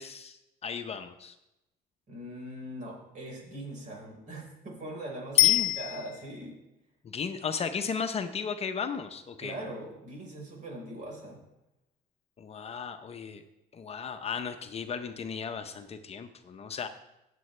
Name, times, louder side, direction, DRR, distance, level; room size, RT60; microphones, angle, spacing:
voice 1, 0.0-1.3 5.3-5.7 7.0-9.6 12.4-13.4 13.7-16.9, left 6 dB, 40° left, 7 dB, 0.7 m, -35 dB
voice 2, 2.1-6.6 9.4-11.4, right 1 dB, 50° right, -1 dB, 4.5 m, -41 dB
Bicycle bell, 5.4-6.5 15.6-15.7, left 19 dB, 80° left, 0.4 m, -25 dB
16.0 x 7.6 x 3.3 m, 0.90 s
cardioid pair, 110°, 17 cm